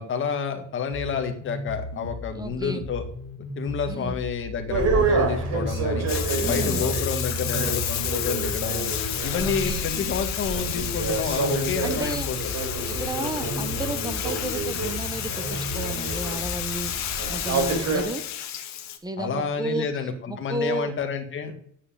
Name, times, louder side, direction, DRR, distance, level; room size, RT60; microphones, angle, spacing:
voice 1, 0.0-3.0 3.4-6.1 6.4-8.9 9.2-12.5 19.2-20.1 20.4-21.5, left 6 dB, 40° left, 5 dB, 1.9 m, -29 dB
sound 1, 0.9-16.9, left 2 dB, 90° left, 2.1 m, -37 dB
voice 2, 2.3-2.8 3.9-4.1 6.4-6.9 9.4-9.9 11.8-12.3 12.9-18.2 19.0-19.9 20.3-20.9, right 2 dB, 10° right, 11 dB, 0.7 m, -32 dB
sound 2, 4.7-18.0, right 3 dB, 55° right, 4.0 m, -29 dB
Bathtub (filling or washing), 6.1-19.0, left 11 dB, 60° left, 1.7 m, -31 dB
9.8 x 7.6 x 9.1 m, 0.64 s
cardioid pair, 170°, 32 cm